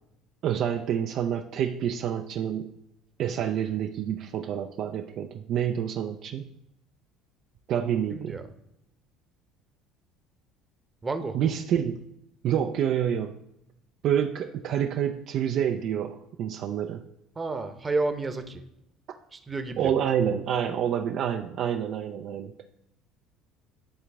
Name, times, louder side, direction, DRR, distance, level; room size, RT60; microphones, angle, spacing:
voice 1, 0.4-2.7 3.2-6.5 7.7-8.4 11.3-12.0 12.4-13.4 14.0-17.0 19.8-22.5, right 9 dB, 50° right, 5 dB, 0.4 m, -28 dB
voice 2, 8.1-8.5 11.0-11.5 17.4-18.6 19.3-19.9, right 3 dB, 25° right, 8 dB, 0.8 m, -31 dB
11.0 x 3.7 x 3.4 m, 0.85 s
figure-of-eight pair, 60°, 0 cm